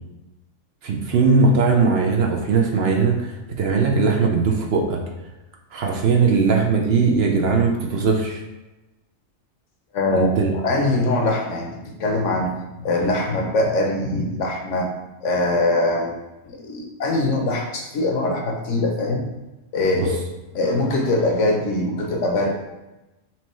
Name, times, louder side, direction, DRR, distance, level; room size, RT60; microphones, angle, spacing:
voice 1, 0.8-3.3 3.6-5.0 5.7-8.4 10.1-10.5 19.9-20.1, right 4 dB, 65° right, 1 dB, 0.7 m, -19 dB
voice 2, 9.9-14.9 15.2-16.2 16.4-19.2 19.7-20.1 20.5-22.5, left 2 dB, 75° left, 1 dB, 1.0 m, -22 dB
4.4 x 2.9 x 3.0 m, 1.0 s
omnidirectional pair, 1.3 m